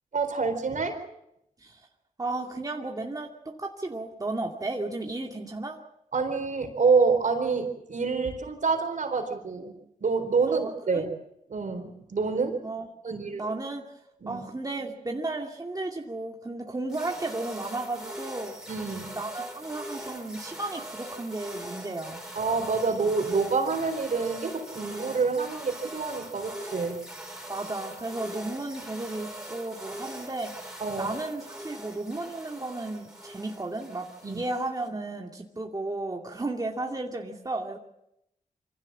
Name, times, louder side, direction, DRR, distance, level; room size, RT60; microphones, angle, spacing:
voice 1, 0.1-1.0 6.1-9.7 10.0-11.1 11.5-12.6 13.0-13.4 14.2-14.4 18.7-19.2 22.4-27.0 30.8-31.1 34.2-34.4, right 4 dB, 65° right, 5 dB, 4.3 m, -27 dB
voice 2, 2.2-5.8 10.5-11.1 12.6-13.9 14.3-18.6 19.2-22.2 27.5-30.6 31.0-37.8, right 2 dB, 25° right, 0 dB, 2.5 m, -34 dB
sound 1, 16.9-34.9, right 1 dB, 5° right, 5.5 m, -41 dB
25.0 x 16.0 x 7.5 m, 0.81 s
cardioid pair, 65°, 14 cm